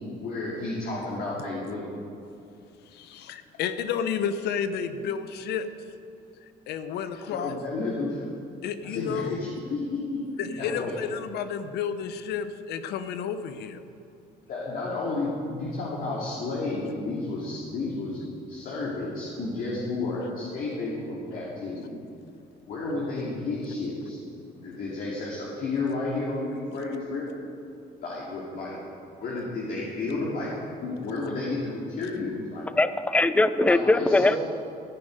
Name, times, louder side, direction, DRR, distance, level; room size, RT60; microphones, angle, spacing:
voice 1, 0.2-1.8 7.3-8.2 8.8-10.9 14.5-18.2 18.5-21.9 22.6-24.2 24.5-27.3 28.0-28.8 29.2-30.5 30.8-32.7 33.7-34.4, left 3 dB, 55° left, -5 dB, 2.4 m, -31 dB
voice 2, 2.8-5.7 6.4-7.6 8.6-9.4 10.4-13.8, left 7 dB, 75° left, 11 dB, 0.8 m, -31 dB
voice 3, 32.8-34.4, left 2 dB, 10° left, 13 dB, 0.5 m, -21 dB
14.5 x 9.8 x 5.2 m, 2.5 s
cardioid pair, 110°, 17 cm